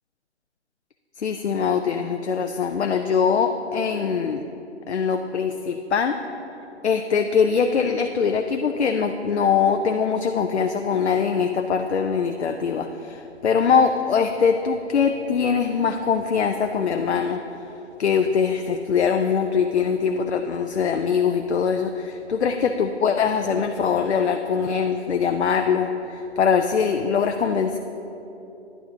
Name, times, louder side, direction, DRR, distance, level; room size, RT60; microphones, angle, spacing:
voice 1, 1.2-4.4 4.9-6.2 6.8-17.4 18.0-27.8, left 6 dB, 65° left, 6 dB, 0.5 m, -22 dB
10.5 x 8.7 x 2.8 m, 2.9 s
figure-of-eight pair, 145°, 36 cm